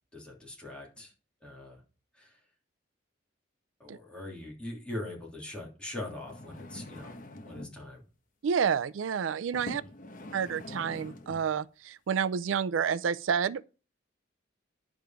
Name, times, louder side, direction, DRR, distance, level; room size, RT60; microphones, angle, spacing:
voice 1, 0.1-1.1 1.4-1.8 2.1-2.4 3.8-7.2 7.4-8.0 9.7-9.9, left 1 dB, 5° left, 3.2 m, -42 dB
sound 1, 6.2-7.8 8.7-8.9 9.5-11.5 12.2-12.3, left 1 dB, 45° left, 1.0 m, -44 dB
voice 2, 8.4-9.8 10.3-13.6, right 7 dB, 90° right, 0.4 m, -29 dB
10.5 x 5.1 x 5.8 m
head